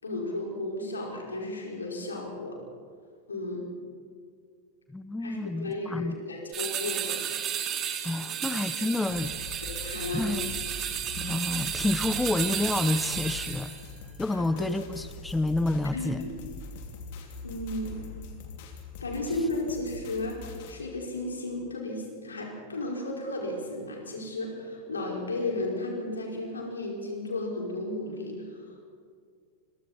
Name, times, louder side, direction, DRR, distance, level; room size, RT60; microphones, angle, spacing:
voice 1, 0.0-2.6 3.3-3.6 5.2-7.2 8.3-8.6 9.6-10.4 14.3-14.8 15.9-16.4 17.4-18.0 19.0-28.8, left 2 dB, 75° left, -1 dB, 5.0 m, -34 dB
voice 2, 4.9-6.2 8.0-9.3 10.1-10.6 11.2-13.7 14.2-16.3, left 2 dB, 5° left, 13 dB, 0.7 m, -29 dB
sound 1, 6.5-13.8, right 9 dB, 30° right, 2.2 m, -33 dB
sound 2, 9.1-20.8, left 4 dB, 50° left, 2.9 m, -42 dB
28.5 x 23.5 x 4.3 m, 2.1 s
figure-of-eight pair, 90°, 0 cm